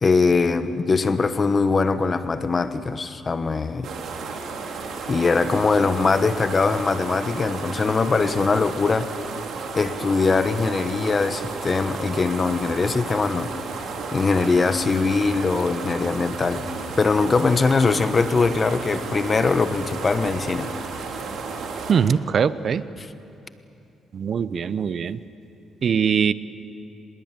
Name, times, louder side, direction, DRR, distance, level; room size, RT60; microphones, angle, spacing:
voice 1, 0.0-3.9 5.1-9.1 9.8-13.5 14.1-16.7 17.0-20.7 23.0-23.1, left 4 dB, 35° left, 1.2 m, -21 dB
sound 1, 3.8-21.9, right 4 dB, 70° right, 3.3 m, -33 dB
voice 2, 21.9-22.8 24.1-25.2 25.8-26.3, right 7 dB, 55° right, 0.7 m, -21 dB
25.0 x 21.0 x 9.0 m
cardioid pair, 90°, 0 cm